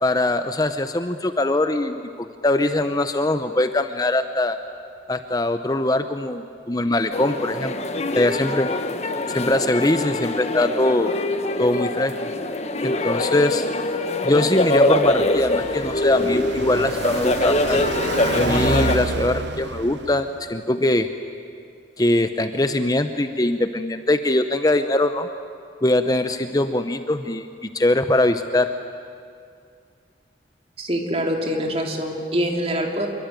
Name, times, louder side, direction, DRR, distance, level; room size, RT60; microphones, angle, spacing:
voice 1, 0.0-4.6 5.1-7.8 8.1-8.7 9.3-11.1 11.6-12.1 12.8-13.7 14.2-17.8 18.3-21.1 22.0-25.3 25.8-27.5 27.7-28.7, left 1 dB, 20° left, 9 dB, 0.8 m, -22 dB
sound 1, 7.1-19.0, left 2 dB, 40° left, 1.3 m, -23 dB
Car passing by, 15.0-20.5, right 4 dB, 85° right, 0.7 m, -29 dB
voice 2, 30.8-33.1, equal, 35° right, 3 dB, 3.0 m, -24 dB
26.5 x 23.0 x 9.1 m, 2.3 s
head